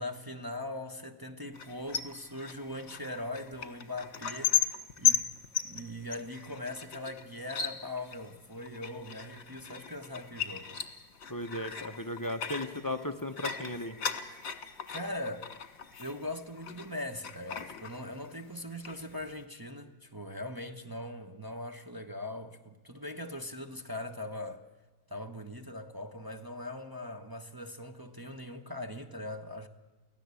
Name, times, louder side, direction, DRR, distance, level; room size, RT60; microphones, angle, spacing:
voice 1, 0.0-5.3 5.6-10.8 14.9-15.5 16.0-24.6 25.1-29.7, left 1 dB, 15° right, 0.8 m, -40 dB
sound 1, 1.5-16.9 17.2-18.4 18.7-19.4, left 8 dB, 45° left, 1.8 m, -36 dB
voice 2, 11.3-14.0, left 1 dB, 30° left, 0.3 m, -36 dB
24.5 x 16.5 x 8.3 m
omnidirectional pair, 2.1 m